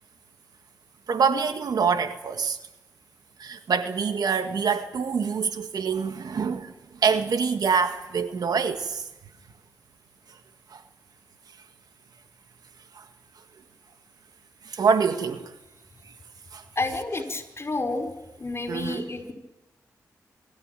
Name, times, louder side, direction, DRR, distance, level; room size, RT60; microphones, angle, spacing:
voice 1, 1.1-2.6 3.4-6.7 7.0-9.0 10.7-10.8 13.0-13.1 14.7-15.5 16.5-16.6 18.7-19.0, right 6 dB, 70° right, 1.9 m, -25 dB
voice 2, 16.7-18.1 18.4-19.3, left 2 dB, 40° left, 5.0 m, -30 dB
25.5 x 14.0 x 9.2 m
cardioid pair, 45°, 7 cm